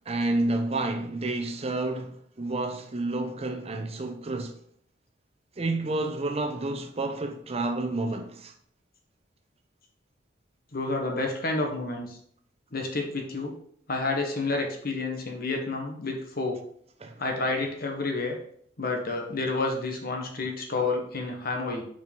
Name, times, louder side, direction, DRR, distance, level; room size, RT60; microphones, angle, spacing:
voice 1, 0.1-4.5 5.6-8.5 17.0-17.2, right 2 dB, 35° right, 0.7 m, -30 dB
voice 2, 10.7-12.2 12.7-13.5 13.9-16.6 17.2-18.4 18.8-21.8, left 3 dB, 55° left, 1.3 m, -29 dB
5.5 x 4.7 x 5.3 m
head